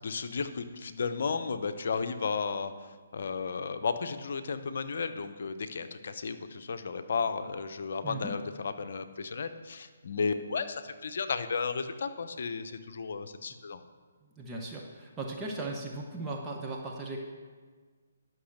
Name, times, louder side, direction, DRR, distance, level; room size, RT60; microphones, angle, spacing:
voice 1, 0.0-13.8, left 5 dB, 60° left, 9 dB, 0.8 m, -34 dB
voice 2, 14.4-17.2, right 2 dB, 15° right, -1 dB, 1.1 m, -37 dB
11.5 x 6.1 x 6.5 m, 1.5 s
figure-of-eight pair, 145°, 0 cm